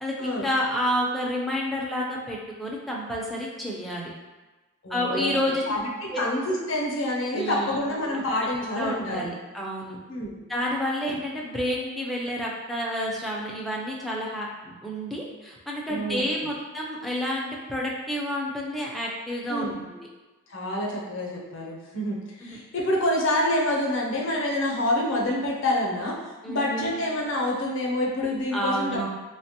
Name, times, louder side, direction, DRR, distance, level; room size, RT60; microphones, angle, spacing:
voice 1, 0.0-4.1 4.9-5.6 6.1-6.2 7.3-7.8 8.7-10.0 10.5-20.1 22.4-22.6 26.4-27.0 28.5-29.1, equal, ahead, -4 dB, 0.4 m, -29 dB
voice 2, 4.8-9.3 10.1-10.4 15.9-16.5 19.5-19.7 20.5-29.1, left 1 dB, 65° left, -2 dB, 0.6 m, -27 dB
3.2 x 2.1 x 2.8 m, 1.2 s
head